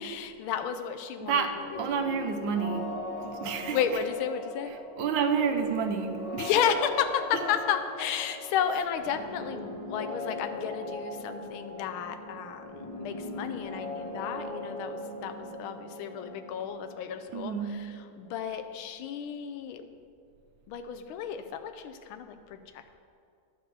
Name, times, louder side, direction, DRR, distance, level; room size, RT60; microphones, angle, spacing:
voice 1, 0.0-1.4 3.7-4.7 6.4-19.9 20.7-23.0, left 8 dB, 90° left, 7 dB, 1.4 m, -32 dB
voice 2, 1.2-1.5 1.8-3.8 5.0-6.5 17.3-17.8, right 6 dB, 70° right, 6 dB, 1.4 m, -29 dB
sound 1, 1.5-19.2, left 2 dB, 25° left, 0.8 m, -40 dB
11.0 x 4.7 x 6.9 m, 2.3 s
omnidirectional pair, 2.2 m